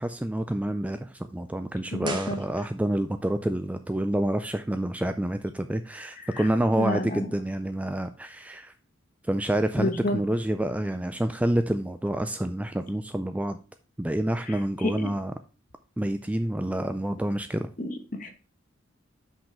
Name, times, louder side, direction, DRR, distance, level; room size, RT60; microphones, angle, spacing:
voice 1, 0.0-8.7 9.3-13.6 14.0-15.3 16.0-17.7, right 1 dB, 5° right, 9 dB, 0.3 m, -28 dB
voice 2, 1.9-2.4 6.3-6.5 6.8-7.3 9.8-10.2 14.5-15.1 17.8-18.3, left 1 dB, 40° left, 6 dB, 1.1 m, -30 dB
sound 1, 2.0-3.1 3.4-3.5, right 3 dB, 25° right, 0.9 m, -39 dB
5.9 x 5.3 x 4.9 m, 0.35 s
head